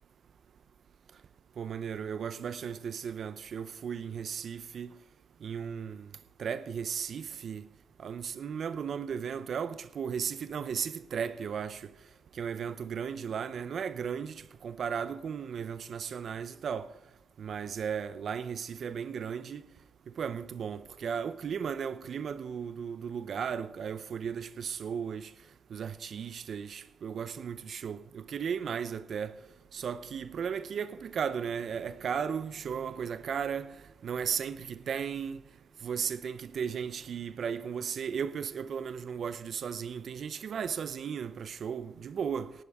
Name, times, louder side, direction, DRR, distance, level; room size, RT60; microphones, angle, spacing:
voice 1, 1.6-4.9 5.4-6.1 6.4-7.6 8.0-11.9 12.4-16.9 17.4-19.6 20.2-25.3 25.7-29.4 29.7-33.8 34.0-35.4 35.8-42.5, right 7 dB, 65° right, 0.6 m, -35 dB
18.0 x 11.5 x 3.5 m
cardioid pair, 75°, 0 cm